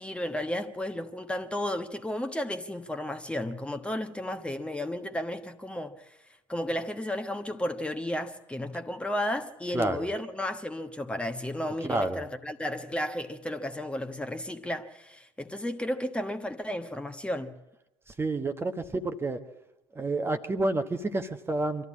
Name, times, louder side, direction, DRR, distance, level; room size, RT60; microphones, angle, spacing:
voice 1, 0.0-6.2 6.5-17.5, left 1 dB, 10° left, 1.2 m, -33 dB
voice 2, 9.7-10.1 11.8-12.2 18.2-19.4 19.9-21.8, right 2 dB, 15° right, 1.2 m, -29 dB
25.0 x 14.0 x 8.5 m
figure-of-eight pair, 65°, 14 cm